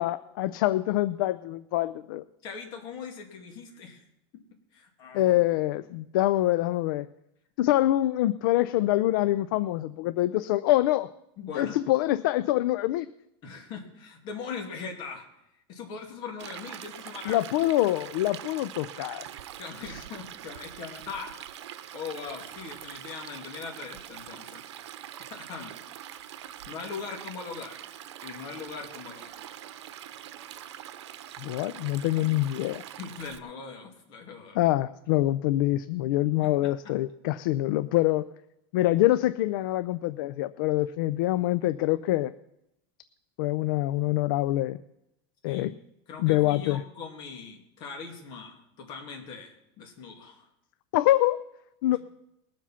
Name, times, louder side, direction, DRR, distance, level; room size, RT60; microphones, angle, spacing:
voice 1, 0.0-2.2 5.1-7.1 7.6-11.1 11.5-13.1 17.3-19.3 31.4-32.8 34.6-38.3 38.7-42.3 43.4-44.8 45.4-45.7 46.2-46.8 50.9-51.4 51.8-52.0, left 15 dB, 50° left, 15 dB, 0.4 m, -25 dB
voice 2, 2.4-4.0 4.3-4.4 4.7-5.3 11.4-11.8 13.4-15.3 15.7-17.7 19.6-21.4 21.9-24.7 25.3-25.8 26.7-27.8 28.2-29.4 33.0-34.6 36.4-36.7 45.4-45.7 46.1-50.5 51.9-52.0, left 5 dB, 35° left, 2 dB, 2.4 m, -40 dB
Stream, 16.4-33.4, right 11 dB, 90° right, 0.9 m, -43 dB
20.0 x 7.4 x 5.7 m, 0.83 s
supercardioid pair, 175°, 14 cm